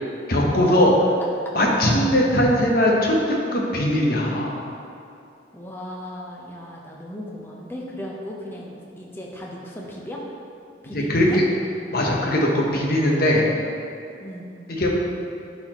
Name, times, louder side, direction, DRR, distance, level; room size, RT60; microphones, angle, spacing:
voice 1, 0.3-0.9 1.5-3.1 3.5-4.8 10.9-11.4 11.9-13.5 14.8-14.9, left 1 dB, 50° left, -2 dB, 1.0 m, -20 dB
voice 2, 5.5-10.2 10.8-11.4 14.2-14.5, left 1 dB, 10° left, -3 dB, 0.8 m, -36 dB
10.0 x 4.2 x 3.0 m, 2.6 s
head